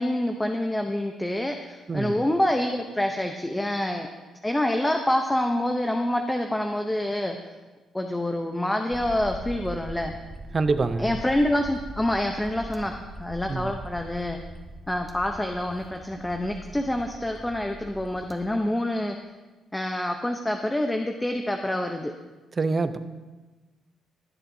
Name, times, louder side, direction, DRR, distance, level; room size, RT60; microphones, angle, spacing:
voice 1, 0.0-4.1 4.4-7.4 7.9-10.1 11.0-14.4 14.9-19.2 19.7-22.1, left 1 dB, 10° left, 4 dB, 0.7 m, -27 dB
sound 1, 8.9-18.3, right 1 dB, 15° right, 1.3 m, -41 dB
voice 2, 10.5-11.1 13.5-13.7 22.6-23.0, right 3 dB, 35° right, 11 dB, 0.6 m, -25 dB
18.0 x 7.5 x 2.7 m, 1.2 s
cardioid pair, 90°, 0 cm